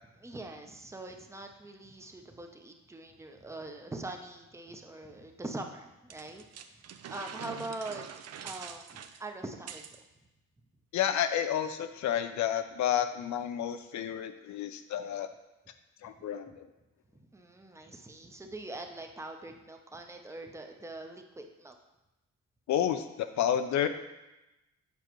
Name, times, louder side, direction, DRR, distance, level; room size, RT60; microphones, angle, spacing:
voice 1, 0.2-6.4 6.7-8.1 8.4-9.8 17.3-21.7, right 2 dB, 10° right, 4 dB, 0.7 m, -43 dB
sound 1, 6.1-10.0, right 8 dB, 55° right, 0.5 m, -45 dB
voice 2, 10.9-15.3 16.0-16.7 22.7-23.9, left 10 dB, 70° left, 9 dB, 0.6 m, -30 dB
7.0 x 5.0 x 3.1 m, 0.98 s
cardioid pair, 90°, 30 cm